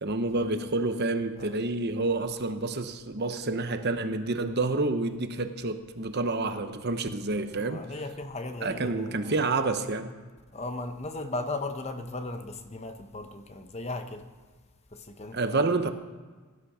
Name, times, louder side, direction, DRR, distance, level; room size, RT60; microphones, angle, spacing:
voice 1, 0.0-7.8 8.6-10.1 15.3-15.9, right 2 dB, 45° right, 0.9 m, -28 dB
voice 2, 7.5-9.4 10.5-14.3 14.9-15.6, left 2 dB, 30° left, 0.8 m, -37 dB
17.0 x 12.0 x 5.0 m
head